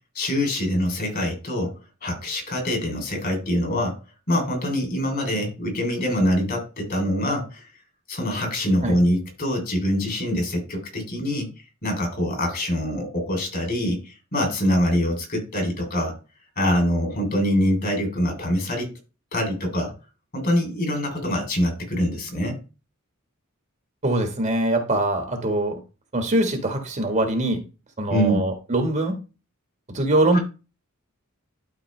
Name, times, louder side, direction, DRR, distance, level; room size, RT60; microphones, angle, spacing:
voice 1, 0.1-4.0 4.3-7.6 8.1-11.5 11.8-16.2 16.6-18.9 19.3-19.9 20.3-22.6 28.1-28.5 30.3-30.4, equal, 45° left, 2 dB, 3.2 m, -24 dB
voice 2, 24.0-25.8 26.1-27.6 28.0-29.2 29.9-30.4, right 1 dB, 35° right, 5 dB, 1.4 m, -23 dB
12.0 x 4.3 x 3.2 m, 0.31 s
head